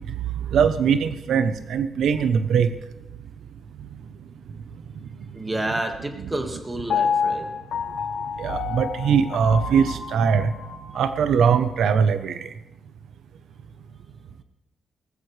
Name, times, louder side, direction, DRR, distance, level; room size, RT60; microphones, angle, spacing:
voice 1, 0.5-2.7 8.4-10.5 10.9-12.4, right 6 dB, 85° right, 10 dB, 0.7 m, -21 dB
voice 2, 5.3-7.5, right 1 dB, 15° right, 4 dB, 1.7 m, -29 dB
Piano, 6.9-11.0 11.5-11.6, left 6 dB, 65° left, 1.4 m, -28 dB
18.5 x 15.0 x 3.3 m, 0.91 s
wide cardioid pair, 150°, 0 cm